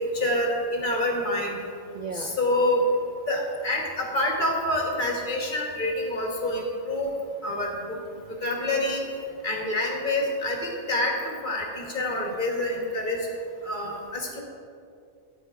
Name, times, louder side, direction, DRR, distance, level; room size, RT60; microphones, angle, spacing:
voice 1, 0.1-1.6 2.1-2.8 3.3-7.1 7.4-7.7 8.4-9.0 9.4-13.2 13.6-14.4, left 1 dB, 40° left, 0 dB, 1.7 m, -27 dB
voice 2, 1.9-2.4 7.9-8.4 8.7-8.8 12.2-12.3, right 4 dB, 45° right, 3 dB, 0.6 m, -39 dB
12.5 x 8.7 x 4.7 m, 2.5 s
omnidirectional pair, 1.3 m